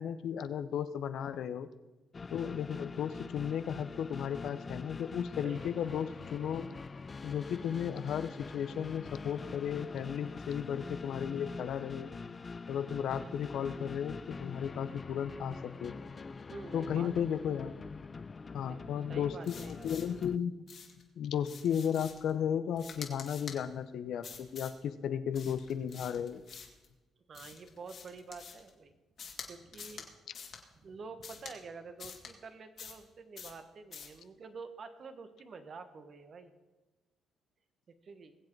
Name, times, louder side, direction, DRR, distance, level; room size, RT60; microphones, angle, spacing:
voice 1, 0.0-1.7 2.3-6.7 7.2-12.1 12.7-15.9 16.7-17.8 18.5-20.5 21.2-26.4, left 8 dB, 75° left, 12 dB, 0.8 m, -34 dB
sound 1, 2.1-20.4, left 4 dB, 35° left, 0.4 m, -44 dB
voice 2, 16.5-17.1 18.5-20.1 27.3-28.9 29.4-30.1 30.8-36.5 38.0-38.3, right 4 dB, 50° right, 9 dB, 1.4 m, -48 dB
sound 2, 19.4-20.3 20.7-21.0 21.4-22.3 22.8-23.6 24.2-24.8 25.3-26.9 27.3-28.7 29.2-29.5 29.7-30.1 30.3-30.6 31.2-31.6 32.0-32.3 32.8-33.1 33.4-33.6 33.9-34.2, left 6 dB, 60° left, 2.3 m, -47 dB
21.0 x 7.6 x 4.7 m, 1.1 s
cardioid pair, 90°, 0 cm